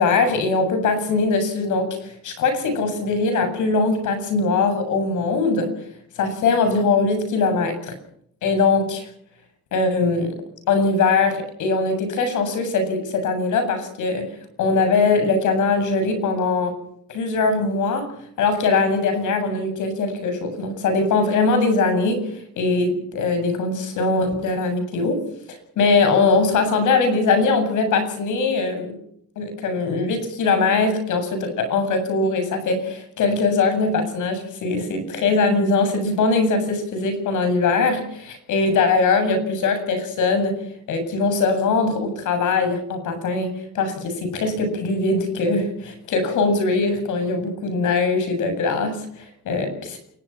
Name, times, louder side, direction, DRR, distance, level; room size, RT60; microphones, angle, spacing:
voice 1, 0.0-5.7 6.2-7.9 8.4-9.1 9.7-10.4 10.7-14.3 14.6-16.7 17.1-18.1 18.4-25.2 25.5-29.0 29.4-40.6 40.9-50.0, left 3 dB, 80° left, 8 dB, 7.9 m, -21 dB
28.5 x 19.0 x 6.0 m, 0.68 s
cardioid pair, 90°, 30 cm